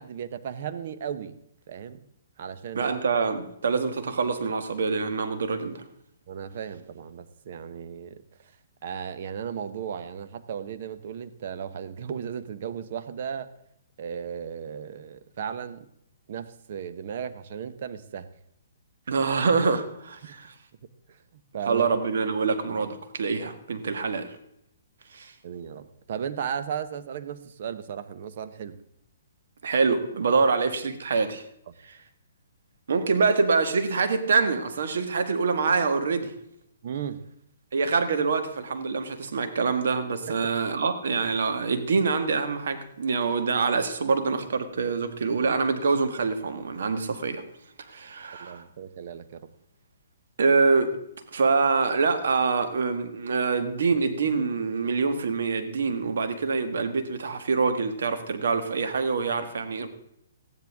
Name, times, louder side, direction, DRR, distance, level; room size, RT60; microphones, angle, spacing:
voice 1, 0.0-1.4 1.7-2.0 2.4-2.9 6.3-8.2 8.8-13.5 14.0-15.9 16.3-18.3 20.2-20.4 21.1-21.9 25.4-28.8 36.8-37.2 48.4-49.5, right 8 dB, 50° right, 11 dB, 1.0 m, -35 dB
voice 2, 2.7-5.8 19.1-20.5 21.7-24.3 25.1-25.3 29.6-31.4 32.9-36.3 37.7-47.4 47.9-48.6 50.4-51.0 51.3-59.9, right 4 dB, 70° right, 8 dB, 1.6 m, -25 dB
14.5 x 10.5 x 3.6 m, 0.77 s
hypercardioid pair, 155°, 0 cm